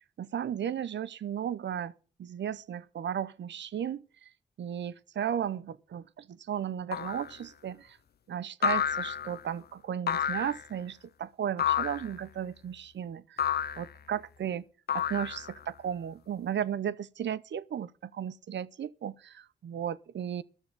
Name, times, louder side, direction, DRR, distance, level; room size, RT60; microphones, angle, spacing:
voice 1, 0.2-1.9 2.2-4.3 4.6-8.0 8.3-14.6 14.9-20.4, right 9 dB, 75° right, 0.6 m, -35 dB
sound 1, 6.9-7.3 8.6-9.4 10.1-10.6 11.6-12.1 13.4-13.9 14.9-15.6, left 9 dB, 60° left, 0.5 m, -30 dB
12.5 x 7.2 x 7.5 m
supercardioid pair, 40°, 19 cm